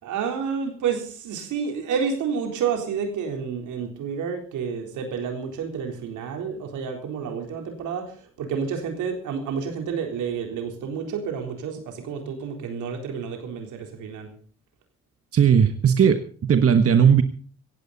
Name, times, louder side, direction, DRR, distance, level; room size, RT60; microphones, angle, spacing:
voice 1, 0.0-14.3, right 6 dB, 85° right, 4 dB, 3.9 m, -30 dB
voice 2, 15.3-17.2, right 7 dB, 50° right, 8 dB, 1.4 m, -17 dB
17.5 x 15.5 x 4.1 m, 0.42 s
supercardioid pair, 60°, 30 cm